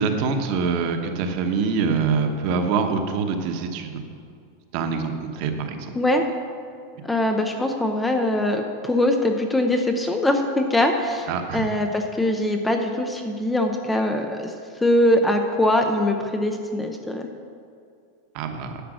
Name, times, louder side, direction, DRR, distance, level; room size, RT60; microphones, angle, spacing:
voice 1, 0.0-4.0 4.7-5.9 11.3-11.7 18.3-18.8, right 5 dB, 45° right, 5 dB, 1.0 m, -25 dB
voice 2, 7.0-14.5 14.8-17.3, left 1 dB, 5° left, 4 dB, 0.5 m, -22 dB
10.0 x 7.2 x 6.1 m, 2.4 s
supercardioid pair, 165°, 0 cm